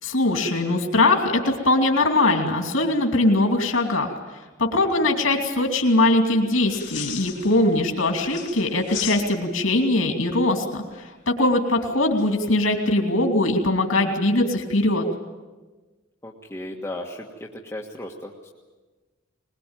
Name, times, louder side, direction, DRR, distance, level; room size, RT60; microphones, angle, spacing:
voice 1, 0.0-4.1 4.6-15.0, left 2 dB, 85° left, 3 dB, 2.8 m, -21 dB
voice 2, 4.8-5.4 16.2-18.5, left 1 dB, 15° left, -2 dB, 1.6 m, -36 dB
sound 1, 6.6-7.9 8.2-9.7 12.2-12.5, left 10 dB, 60° left, 4.2 m, -36 dB
22.0 x 21.5 x 9.0 m, 1.3 s
head